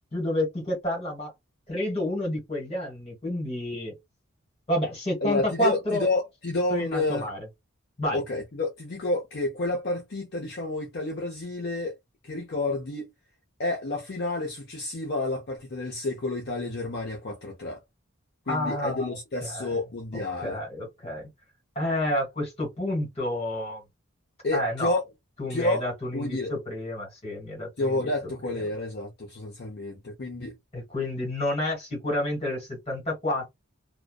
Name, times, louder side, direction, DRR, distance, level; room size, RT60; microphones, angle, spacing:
voice 1, 0.1-1.3 1.7-3.9 4.7-6.1 6.7-7.4 8.0-8.2 18.5-19.7 20.1-21.2 21.7-23.8 24.5-24.9 25.4-28.1 30.7-33.5, left 1 dB, 30° left, 1.6 m, -29 dB
voice 2, 5.2-7.3 8.1-11.9 12.2-13.1 13.6-17.8 18.5-20.6 24.4-25.0 25.5-26.5 27.8-30.5, left 2 dB, 50° left, 0.6 m, -30 dB
2.5 x 2.1 x 2.3 m
head